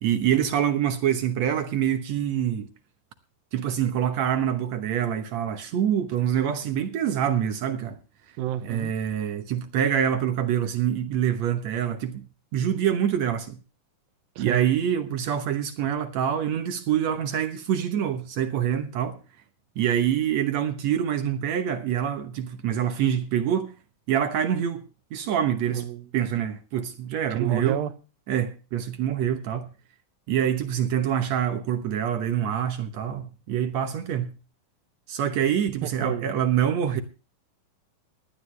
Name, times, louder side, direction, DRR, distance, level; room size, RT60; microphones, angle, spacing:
voice 1, 0.0-2.7 3.5-8.0 8.6-12.2 12.5-13.6 14.4-19.2 19.8-23.7 24.1-24.8 25.1-25.8 26.1-27.8 28.3-29.7 30.3-34.3 35.1-37.0, right 9 dB, 65° right, 1.9 m, -25 dB
voice 2, 8.4-8.9 14.4-14.7 25.7-26.1 27.3-27.9 35.8-36.3, right 12 dB, 85° right, 2.8 m, -30 dB
19.0 x 11.5 x 3.2 m
omnidirectional pair, 4.0 m